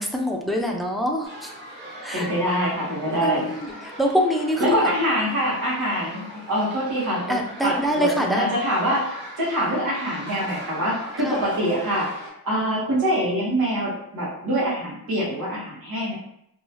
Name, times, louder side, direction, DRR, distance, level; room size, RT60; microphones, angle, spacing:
voice 1, 0.0-1.5 2.0-2.3 3.2-3.7 4.0-4.9 7.3-8.5 11.2-11.4, equal, ahead, 1 dB, 0.4 m, -24 dB
sound 1, 1.2-12.3, equal, 30° right, 1.4 m, -40 dB
voice 2, 2.1-3.5 4.6-7.4 7.6-9.1 9.4-12.1 12.4-16.1, equal, 70° right, -7 dB, 1.1 m, -24 dB
2.8 x 2.3 x 2.7 m, 0.76 s
cardioid pair, 80°, 37 cm